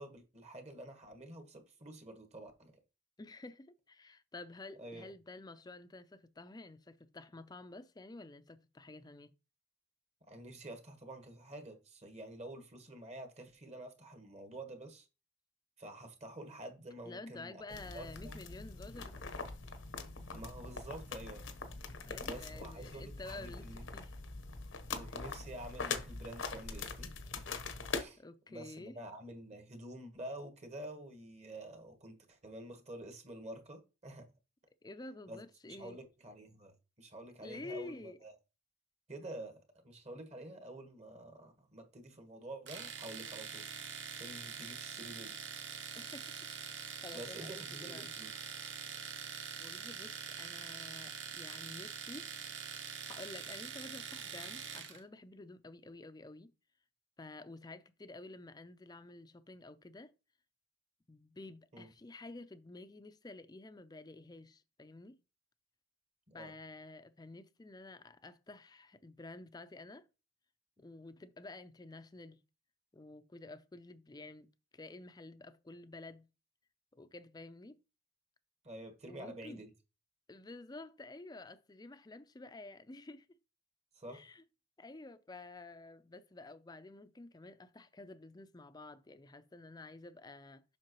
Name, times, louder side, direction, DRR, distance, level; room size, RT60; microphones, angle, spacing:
voice 1, 0.0-2.7 4.8-5.1 10.3-15.1 15.8-17.6 17.9-18.4 20.3-21.5 22.2-23.8 25.0-27.2 27.9-28.2 28.5-34.3 35.3-38.3 39.1-43.7 44.1-45.4 47.1-48.4 61.7-61.9 66.3-66.5 78.6-79.7 83.9-84.3, right 1 dB, 35° right, 1.4 m, -49 dB
voice 2, 3.2-9.3 17.0-19.2 22.0-24.1 28.2-28.9 34.8-36.0 37.4-38.2 45.9-46.4 46.6-48.1 49.6-52.3 53.0-56.5 57.2-60.1 61.1-65.2 66.3-70.1 70.8-72.4 72.9-76.3 76.9-77.8 79.1-79.7 80.3-83.3 84.1-84.4 84.8-90.6, left 2 dB, 20° left, 0.5 m, -50 dB
sound 1, 17.7-28.0, left 4 dB, 90° left, 1.1 m, -43 dB
Domestic sounds home sounds, 42.7-55.0, right 7 dB, 70° right, 1.0 m, -44 dB
7.4 x 5.8 x 3.0 m
head